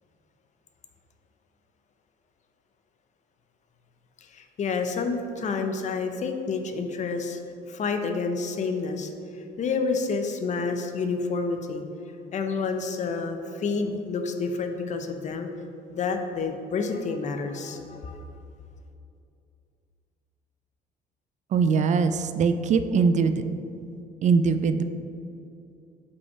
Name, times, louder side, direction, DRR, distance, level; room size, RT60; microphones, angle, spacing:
voice 1, 4.2-7.4 7.7-9.1 9.6-11.8 12.3-15.5 15.9-18.2, left 4 dB, 45° left, 6 dB, 0.7 m, -29 dB
voice 2, 21.5-23.4 24.2-24.8, right 5 dB, 45° right, 10 dB, 0.4 m, -22 dB
5.6 x 5.4 x 4.6 m, 2.6 s
cardioid pair, 110°, 17 cm